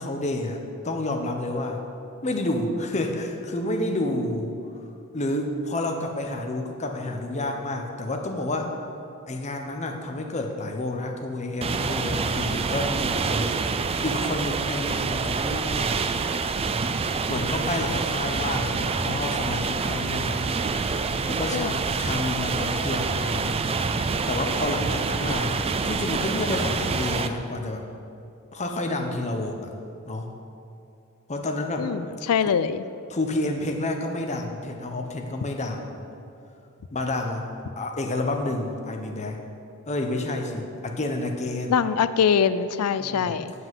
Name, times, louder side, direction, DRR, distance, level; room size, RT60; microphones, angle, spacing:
voice 1, 0.0-1.8 2.2-4.9 5.1-8.7 9.3-13.6 14.0-16.3 17.3-20.4 21.2-23.6 24.3-27.8 28.5-29.7 30.1-30.3 31.3-31.9 33.1-36.0 36.9-37.5 37.8-39.4 39.9-41.8 43.0-43.3, left 2 dB, 30° left, 3 dB, 0.8 m, -29 dB
Water Wheel, 11.6-27.3, right 4 dB, 25° right, 0.3 m, -27 dB
voice 2, 31.8-32.8 41.7-43.5, left 7 dB, 80° left, 14 dB, 0.4 m, -23 dB
7.8 x 5.6 x 7.4 m, 2.5 s
head